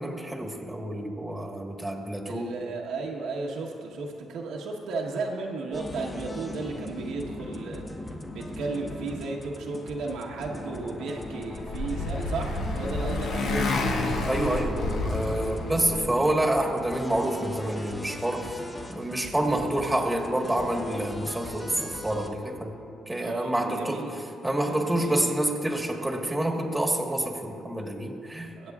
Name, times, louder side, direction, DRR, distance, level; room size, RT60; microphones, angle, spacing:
voice 1, 0.0-2.5 14.2-18.6 18.9-22.7 23.1-28.5, right 1 dB, 10° right, 1 dB, 1.4 m, -28 dB
voice 2, 2.3-7.8 8.3-13.7 23.2-24.1 24.7-25.4 28.6-28.7, right 3 dB, 85° right, 0 dB, 1.1 m, -34 dB
sound 1, 5.7-22.3, left 1 dB, 20° left, 0.9 m, -39 dB
Motorcycle, 11.2-16.2, left 2 dB, 75° left, 1.2 m, -29 dB
21.0 x 8.0 x 2.4 m, 2.5 s
cardioid pair, 90°, 0 cm